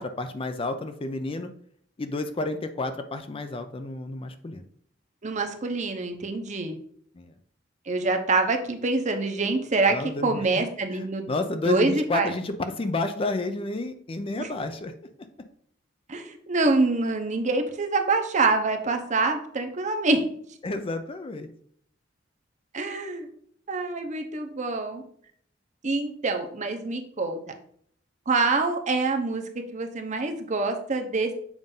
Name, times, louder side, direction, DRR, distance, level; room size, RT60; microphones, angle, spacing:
voice 1, 0.0-1.5 2.0-4.6 7.1-7.3 9.9-14.9 20.6-21.5, left 2 dB, 30° left, 8 dB, 0.4 m, -31 dB
voice 2, 5.2-6.8 7.9-10.0 10.2-11.3 11.7-12.3 14.4-14.5 16.1-20.2 22.7-23.3 23.7-25.0 25.8-27.4 28.3-29.4 29.7-31.3, right 3 dB, 40° right, 5 dB, 0.8 m, -25 dB
7.2 x 2.6 x 5.4 m, 0.63 s
head